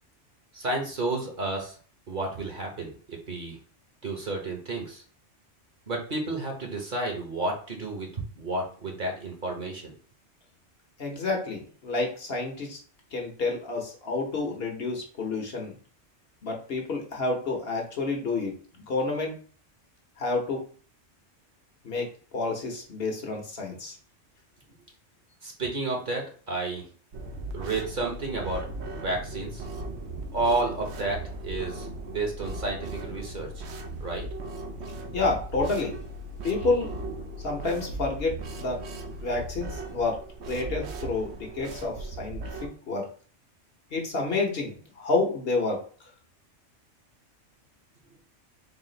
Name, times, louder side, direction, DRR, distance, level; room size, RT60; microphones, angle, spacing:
voice 1, 0.5-1.7 2.1-3.6 4.0-5.0 5.9-9.9 25.4-26.8 27.5-28.7 28.9-29.6 30.3-33.5 34.0-34.3, right 2 dB, 45° right, 1 dB, 1.1 m, -31 dB
voice 2, 11.0-12.8 13.1-15.7 16.4-18.5 18.9-19.3 20.2-20.6 21.8-23.9 35.1-36.0 36.4-36.9 37.4-38.8 39.2-40.2 40.5-43.1 43.9-45.8, left 3 dB, 60° left, 2 dB, 1.1 m, -29 dB
sound 1, 27.1-42.7, right 2 dB, 75° right, 0.9 m, -37 dB
4.1 x 2.4 x 3.8 m, 0.42 s
omnidirectional pair, 1.2 m